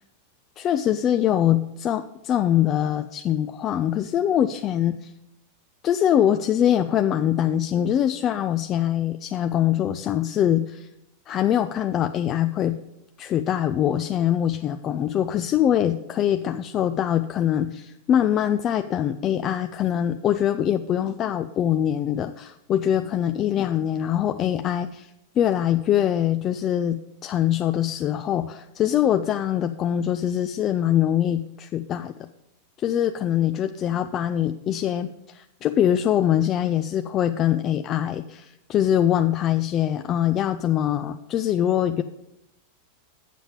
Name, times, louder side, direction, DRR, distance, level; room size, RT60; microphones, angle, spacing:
voice 1, 0.6-5.1 5.8-10.9 11.3-12.8 13.2-25.1 25.4-32.1 32.8-42.0, left 10 dB, 30° left, 8 dB, 0.4 m, -23 dB
7.5 x 7.1 x 5.2 m, 0.84 s
supercardioid pair, 130°, 0 cm